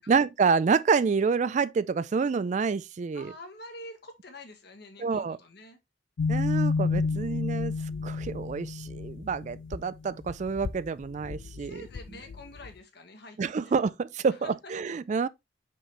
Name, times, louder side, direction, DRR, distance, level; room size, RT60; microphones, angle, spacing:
voice 1, 0.0-3.3 5.0-5.4 6.3-7.7 8.0-11.9 13.4-15.3, right 5 dB, 40° right, 0.3 m, -28 dB
voice 2, 3.1-5.8 11.6-13.7 14.4-14.7, left 1 dB, 60° left, 1.5 m, -47 dB
sound 1, 6.2-12.7, left 4 dB, 75° left, 0.4 m, -31 dB
5.8 x 5.4 x 3.2 m
head